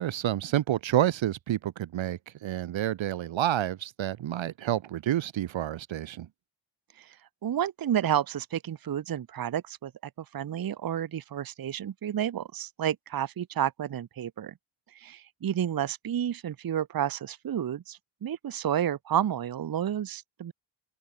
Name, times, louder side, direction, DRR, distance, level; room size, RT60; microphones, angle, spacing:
voice 1, 0.0-6.3, right 12 dB, 70° right, 0.9 m, -29 dB
voice 2, 7.4-9.9 10.2-14.5 14.9-20.5, right 10 dB, 45° right, 0.8 m, -31 dB
cardioid pair, 60°, 48 cm